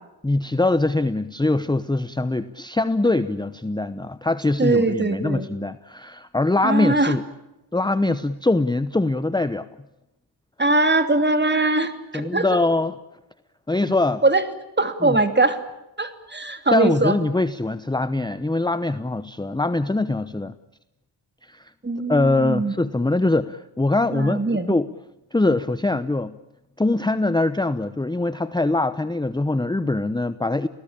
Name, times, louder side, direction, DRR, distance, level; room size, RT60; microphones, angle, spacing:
voice 1, 0.2-7.2 7.7-9.7 12.1-13.0 13.7-14.2 15.0-15.2 16.7-20.5 21.4-21.7 22.1-24.9 25.3-26.4 26.8-30.7, left 2 dB, 10° left, 13 dB, 0.9 m, -23 dB
voice 2, 4.6-5.5 6.6-7.2 10.6-12.5 14.2-14.4 14.8-15.6 16.0-17.2 21.8-22.7 24.1-24.7, right 2 dB, 25° right, 9 dB, 2.8 m, -21 dB
29.5 x 19.0 x 8.8 m, 0.94 s
cardioid pair, 75°, 44 cm